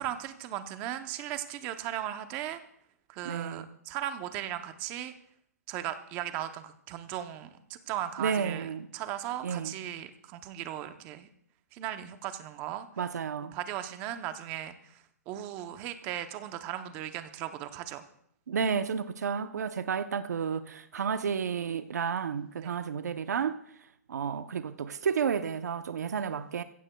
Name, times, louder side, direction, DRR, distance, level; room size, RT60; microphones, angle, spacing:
voice 1, 0.0-2.6 3.1-5.1 5.7-11.3 11.7-12.9 13.5-18.0 22.6-22.7, right 12 dB, 20° right, 0.7 m, -37 dB
voice 2, 3.2-3.7 8.2-8.9 9.4-9.7 13.0-13.6 18.5-23.6 24.1-26.6, right 6 dB, 85° right, 0.8 m, -31 dB
23.5 x 15.5 x 2.3 m
hypercardioid pair, 170°, 9 cm